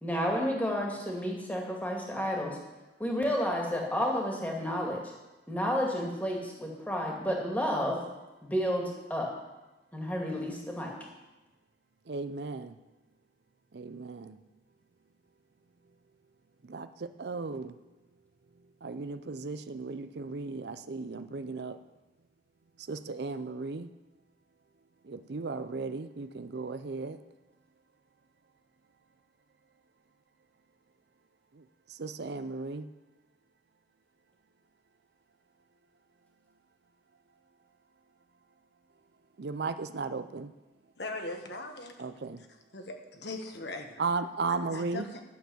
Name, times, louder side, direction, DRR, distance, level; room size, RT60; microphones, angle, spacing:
voice 1, 0.0-2.6 3.0-5.0 5.5-8.0 8.4-9.3 9.9-10.9, equal, 10° left, -1 dB, 2.2 m, -31 dB
voice 2, 12.1-12.8 13.7-14.4 16.7-17.7 18.8-21.8 22.9-23.9 25.0-27.2 31.9-32.9 39.4-40.5 42.0-42.4 44.0-45.1, right 4 dB, 60° right, 11 dB, 0.5 m, -35 dB
voice 3, 41.0-42.0 42.4-42.5 42.7-44.0 44.7-45.2, left 2 dB, 60° left, 4 dB, 1.4 m, -40 dB
11.5 x 7.0 x 7.9 m, 1.1 s
head